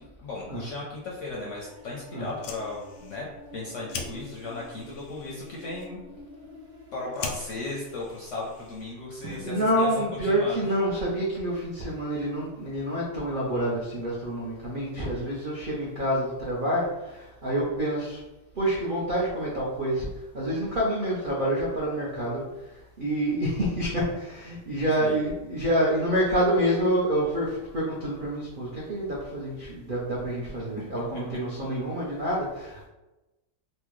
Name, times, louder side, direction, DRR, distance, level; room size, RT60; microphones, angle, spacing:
voice 1, 0.0-3.3 3.5-6.0 6.9-9.9 10.2-10.7 25.0-25.2 30.9-31.2, left 2 dB, 65° left, -4 dB, 0.7 m, -36 dB
sound 1, 1.5-7.7, equal, 45° right, 1.0 m, -49 dB
Fire, 2.2-9.1, left 5 dB, 85° left, 1.2 m, -43 dB
voice 2, 9.2-18.2 18.5-32.9, right 1 dB, 70° right, -5 dB, 0.4 m, -27 dB
Drum, 9.2-10.9, right 3 dB, 85° right, 1.4 m, -45 dB
4.3 x 2.1 x 3.0 m, 1.0 s
omnidirectional pair, 1.9 m